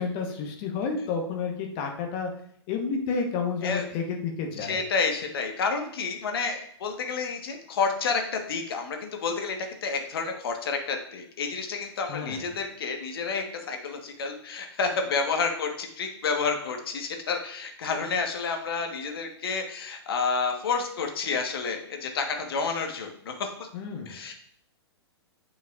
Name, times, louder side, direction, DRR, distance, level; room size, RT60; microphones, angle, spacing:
voice 1, 0.0-2.3 2.7-4.8 12.1-12.5 23.7-24.1, left 5 dB, 35° left, 2 dB, 1.1 m, -30 dB
voice 2, 4.6-23.7 24.1-24.3, left 5 dB, 60° left, 4 dB, 1.3 m, -30 dB
9.1 x 5.3 x 2.5 m, 0.66 s
figure-of-eight pair, 110°, 14 cm